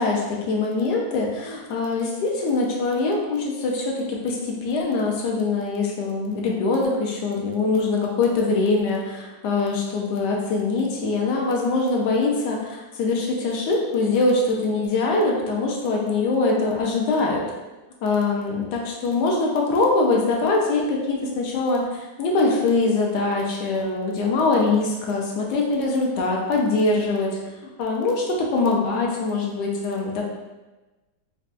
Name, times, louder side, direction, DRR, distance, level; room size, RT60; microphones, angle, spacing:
voice 1, 0.0-17.4 18.0-27.4 27.8-30.2, left 3 dB, 75° left, -1 dB, 1.1 m, -23 dB
5.3 x 2.2 x 2.5 m, 1.1 s
omnidirectional pair, 2.0 m